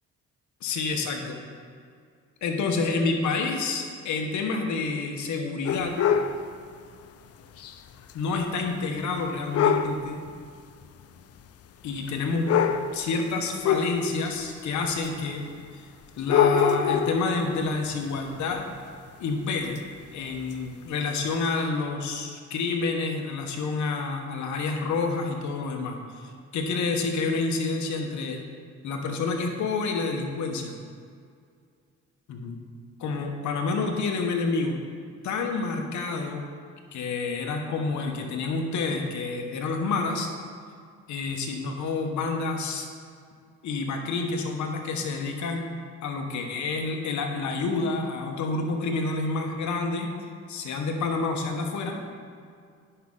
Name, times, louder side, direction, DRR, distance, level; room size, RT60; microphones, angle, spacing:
voice 1, 0.6-1.4 2.4-5.9 8.1-10.2 11.8-12.5 12.9-15.4 15.7-15.9 16.2-18.6 19.2-19.8 20.1-28.4 28.8-30.8 32.3-32.6 33.0-34.8 35.2-36.4 36.9-40.3 41.1-42.9 43.6-45.7 46.0-50.1 50.5-52.0, left 4 dB, 70° left, 3 dB, 1.1 m, -28 dB
sound 1, 5.7-6.4 7.6-7.7 8.1-8.2 9.5-10.0 11.0-11.1 12.1-12.2 12.5-13.0 13.6-14.3 15.0-15.1 16.2-17.3 19.8-19.9 20.5-20.6 21.4-21.5, left 7 dB, 55° left, 0.5 m, -23 dB
10.0 x 5.6 x 3.8 m, 2.2 s
cardioid pair, 90°, 30 cm